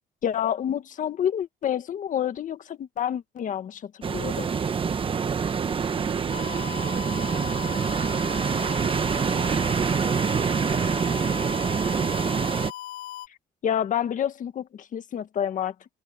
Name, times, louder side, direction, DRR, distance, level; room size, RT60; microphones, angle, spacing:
voice 1, 0.2-4.5 13.6-16.0, left 9 dB, 50° left, 1.7 m, -28 dB
sound 1, 4.0-12.7, right 6 dB, 30° right, 1.2 m, -26 dB
voice 2, 5.9-11.0, right 10 dB, 55° right, 4.7 m, -43 dB
sound 2, 6.3-13.3, left 13 dB, 70° left, 6.2 m, -38 dB
cardioid pair, 110°, 17 cm